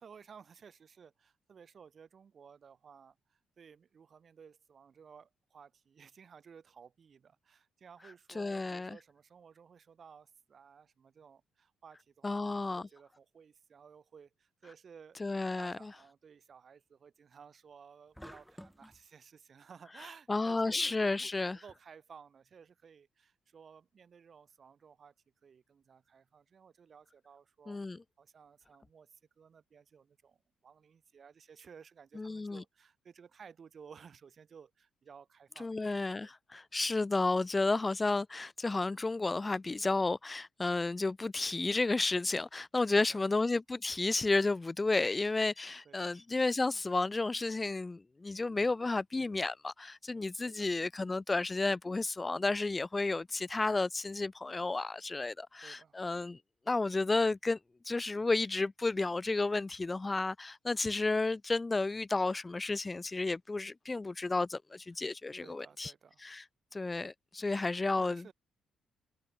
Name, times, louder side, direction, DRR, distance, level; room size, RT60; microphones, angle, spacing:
voice 1, 0.0-25.1 25.4-27.8 28.2-30.4 30.6-35.8 36.2-36.3 42.9-43.4 45.8-46.2 50.4-50.7 55.6-56.0 65.4-66.2 68.0-68.3, right 6 dB, 45° right, 6.0 m, -56 dB
voice 2, 8.4-9.0 12.2-12.9 15.2-15.9 20.3-21.6 27.7-28.0 32.2-32.6 35.6-56.4 56.7-57.6 57.8-65.9 66.2-66.4 66.7-68.3, left 3 dB, 20° left, 0.3 m, -32 dB
sound 1, 18.1-19.0, equal, ahead, 6.4 m, -50 dB
cardioid pair, 90°, 0 cm